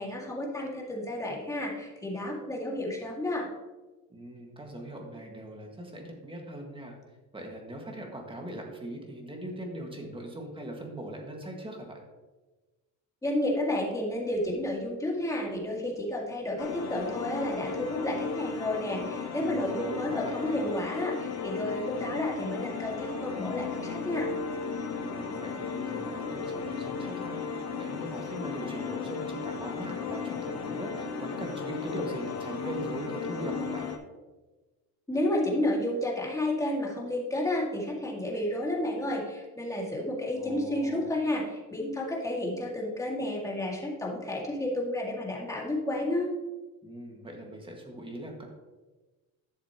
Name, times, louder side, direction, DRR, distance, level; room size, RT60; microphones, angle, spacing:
voice 1, 0.0-3.5 13.2-24.3 35.1-46.3, left 1 dB, 10° left, -3 dB, 2.0 m, -31 dB
voice 2, 4.1-6.9 7.3-12.0 19.3-20.6 24.9-27.4 27.8-33.9 40.3-41.1 46.8-48.4, right 1 dB, 15° right, 1 dB, 1.7 m, -40 dB
sound 1, 16.6-34.0, left 5 dB, 45° left, 1.1 m, -35 dB
11.5 x 6.7 x 2.9 m, 1.2 s
cardioid pair, 130°, 37 cm